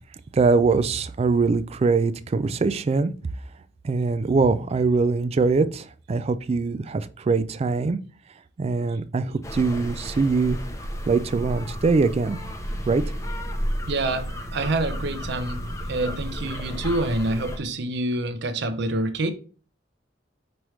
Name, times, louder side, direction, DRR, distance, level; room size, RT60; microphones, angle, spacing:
voice 1, 0.3-3.1 3.8-8.0 8.6-10.6 11.1-12.4 12.9-13.0, right 4 dB, 35° right, 0.3 m, -22 dB
sound 1, 9.4-17.6, equal, 15° left, 0.7 m, -32 dB
voice 2, 13.9-19.3, right 2 dB, 65° right, 0.7 m, -27 dB
5.3 x 3.1 x 3.1 m
head